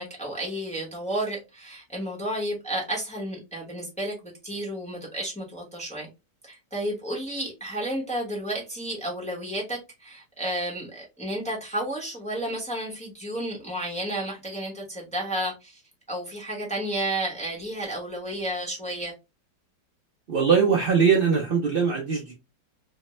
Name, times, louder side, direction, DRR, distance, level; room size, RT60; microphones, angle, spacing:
voice 1, 0.0-6.1 6.4-15.8 16.1-19.1, right 1 dB, 5° left, 0.6 m, -32 dB
voice 2, 20.3-22.3, right 6 dB, 90° right, 0.4 m, -21 dB
3.3 x 2.1 x 3.0 m
omnidirectional pair, 1.9 m